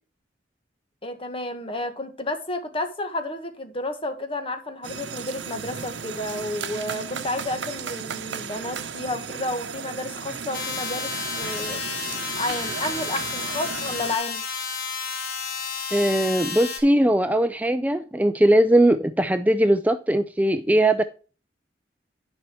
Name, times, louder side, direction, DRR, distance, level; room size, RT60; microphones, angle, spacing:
voice 1, 1.0-11.8 12.4-14.4, left 2 dB, 30° left, 1.5 m, -31 dB
sound 1, 4.8-14.2, right 6 dB, 85° right, 0.8 m, -35 dB
sound 2, 10.5-16.8, left 5 dB, 60° left, 2.7 m, -31 dB
voice 2, 15.9-21.0, right 1 dB, 10° right, 0.4 m, -20 dB
10.5 x 5.4 x 4.6 m
head